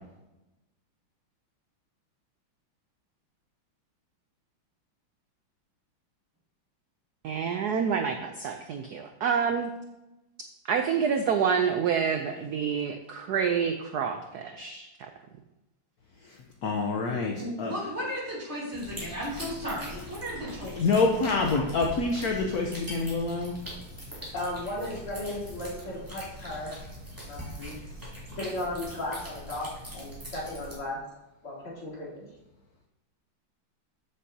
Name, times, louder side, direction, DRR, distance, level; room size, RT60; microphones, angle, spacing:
voice 1, 7.2-9.7 10.6-15.1, right 6 dB, 75° right, 6 dB, 0.9 m, -28 dB
voice 2, 16.6-17.7 20.8-23.5, left 3 dB, 55° left, 1 dB, 1.1 m, -26 dB
voice 3, 17.4-20.9, equal, 30° right, -5 dB, 3.2 m, -35 dB
sound 1, 18.7-30.7, equal, 10° right, 2.8 m, -42 dB
voice 4, 24.3-26.8 27.3-27.8 28.4-29.7 29.9-31.0 31.4-32.3, left 1 dB, 80° left, -6 dB, 4.3 m, -35 dB
13.5 x 7.5 x 2.8 m, 0.97 s
omnidirectional pair, 2.3 m